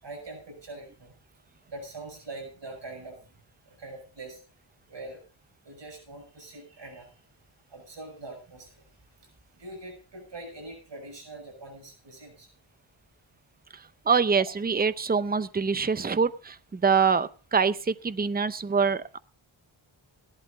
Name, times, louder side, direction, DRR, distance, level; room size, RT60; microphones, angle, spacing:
voice 1, 0.0-1.1 1.7-3.2 3.7-4.4 4.9-5.2 5.6-7.1 7.7-8.8 9.6-12.5, right 2 dB, 65° right, 1 dB, 6.8 m, -43 dB
voice 2, 14.1-19.2, right 5 dB, 20° right, 14 dB, 0.6 m, -25 dB
16.0 x 11.5 x 3.9 m, 0.36 s
wide cardioid pair, 130°, 47 cm